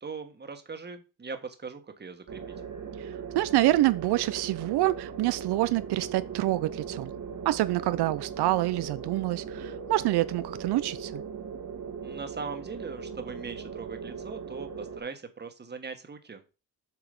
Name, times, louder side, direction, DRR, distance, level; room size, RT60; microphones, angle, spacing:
voice 1, 0.0-2.4 12.0-16.6, right 5 dB, 25° right, 1.4 m, -40 dB
sound 1, 2.3-15.0, right 6 dB, 50° right, 1.5 m, -39 dB
voice 2, 3.3-7.1 7.4-11.2, right 16 dB, 85° right, 0.5 m, -26 dB
7.7 x 4.8 x 5.2 m
cardioid pair, 115°, 38 cm